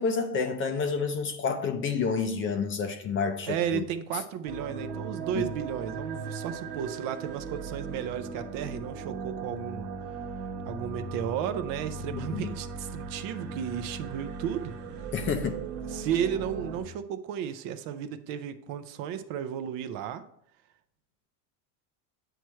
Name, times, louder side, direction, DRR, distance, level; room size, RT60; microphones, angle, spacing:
voice 1, 0.0-3.8 5.3-5.4 12.1-12.5 15.1-15.6, left 5 dB, 30° left, 0.5 m, -29 dB
voice 2, 3.5-9.9 10.7-14.8 15.9-20.2, right 9 dB, 50° right, 0.6 m, -33 dB
sound 1, 4.5-16.8, right 4 dB, 70° right, 1.1 m, -38 dB
8.9 x 3.2 x 4.5 m
supercardioid pair, 140°, 44 cm